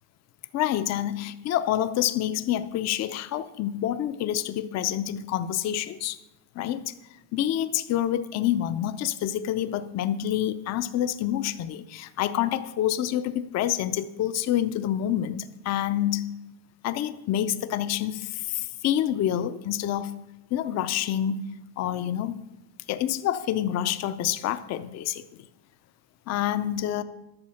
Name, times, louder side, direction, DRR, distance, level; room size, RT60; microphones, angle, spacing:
voice 1, 0.5-6.2 6.6-6.9 7.3-16.3 16.8-20.1 20.5-21.5 21.8-22.4 22.9-25.2 26.3-27.0, left 11 dB, 35° left, 12 dB, 0.5 m, -27 dB
10.5 x 7.0 x 5.6 m, 0.95 s
cardioid pair, 150°, 45 cm